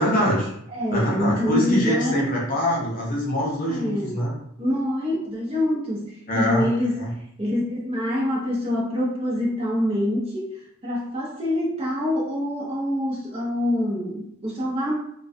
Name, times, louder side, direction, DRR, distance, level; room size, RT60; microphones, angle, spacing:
voice 1, 0.0-0.5 0.9-4.3 6.3-6.7 7.0-7.1, equal, 40° left, -4 dB, 0.7 m, -24 dB
voice 2, 0.7-2.4 3.7-4.2 4.6-7.0 7.4-10.6 10.8-14.9, left 1 dB, 30° right, -4 dB, 0.7 m, -25 dB
2.3 x 2.2 x 2.5 m, 0.71 s
head